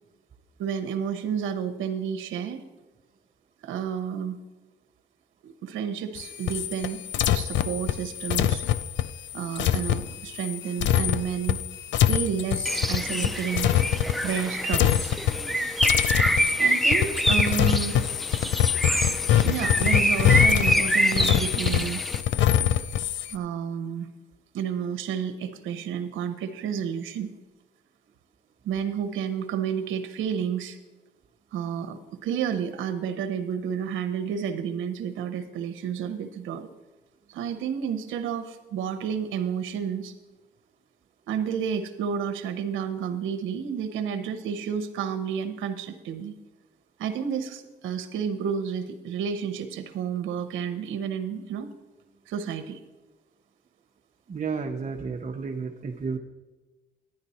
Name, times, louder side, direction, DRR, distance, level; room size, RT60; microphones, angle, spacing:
voice 1, 0.6-2.6 3.6-4.4 5.4-7.0 7.3-8.6 9.3-11.6 12.0-13.7 14.2-15.1 16.6-18.1 19.4-22.0 23.3-24.1 24.5-27.3 28.6-30.8 31.5-36.7 37.3-40.1 41.3-46.3 47.0-51.7 52.3-52.8, right 7 dB, 80° right, 8 dB, 0.8 m, -30 dB
sound 1, 6.2-14.4 14.7-15.5 15.8-23.3, left 11 dB, 65° left, 0.4 m, -24 dB
Bird, 12.6-22.2, equal, ahead, 0.5 m, -26 dB
voice 2, 54.3-56.2, right 5 dB, 35° right, 2 dB, 0.7 m, -32 dB
10.5 x 9.9 x 4.2 m, 1.1 s
cardioid pair, 90°, 20 cm